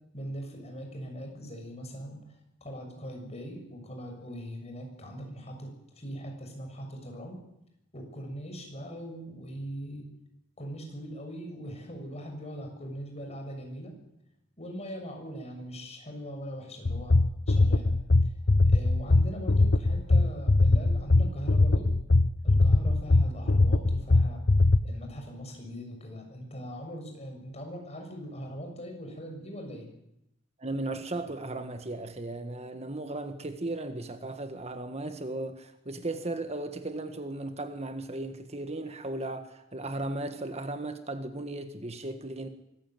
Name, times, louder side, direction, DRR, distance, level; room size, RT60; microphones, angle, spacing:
voice 1, 0.1-7.4 7.9-10.1 10.6-13.9 14.6-17.2 17.5-17.9 18.2-18.3 18.6-21.9 22.4-24.5 24.8-29.9, equal, 35° left, 6.7 m, -41 dB
sound 1, 16.9-24.8, left 2 dB, 60° left, 1.0 m, -21 dB
voice 2, 30.6-42.5, right 2 dB, 35° right, 1.6 m, -36 dB
24.5 x 15.5 x 9.2 m
head